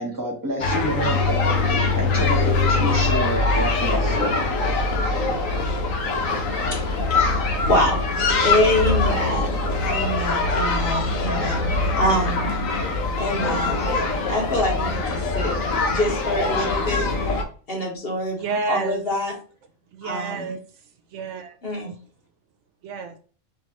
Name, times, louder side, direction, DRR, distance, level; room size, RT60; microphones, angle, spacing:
voice 1, 0.0-4.3, equal, 15° right, 0.9 m, -28 dB
sound 1, 0.6-17.4, left 3 dB, 75° left, 1.1 m, -23 dB
voice 2, 7.7-12.5 13.2-13.9 14.3-15.5 15.9-17.1 17.7-19.3 20.0-20.5 21.6-21.9, left 1 dB, 45° left, 1.5 m, -25 dB
voice 3, 18.3-19.0 19.9-20.8 21.1-21.6 22.8-23.2, right 4 dB, 65° right, 0.8 m, -30 dB
4.5 x 2.6 x 2.8 m
omnidirectional pair, 1.5 m